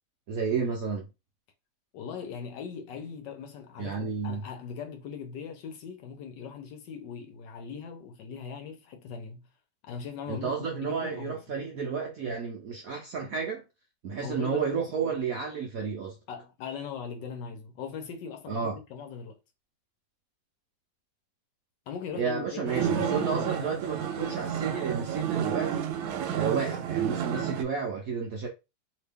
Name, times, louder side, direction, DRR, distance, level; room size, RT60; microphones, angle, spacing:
voice 1, 0.3-1.1 3.8-4.4 10.3-13.6 14.0-16.1 18.5-18.8 22.1-25.9 26.3-28.5, right 6 dB, 70° right, 0.8 m, -31 dB
voice 2, 1.9-9.4 9.8-11.4 14.2-14.9 16.3-19.4 21.9-23.7, left 6 dB, 70° left, 1.1 m, -40 dB
sound 1, 22.7-27.6, right 8 dB, 90° right, 1.4 m, -30 dB
2.9 x 2.8 x 3.4 m
omnidirectional pair, 2.2 m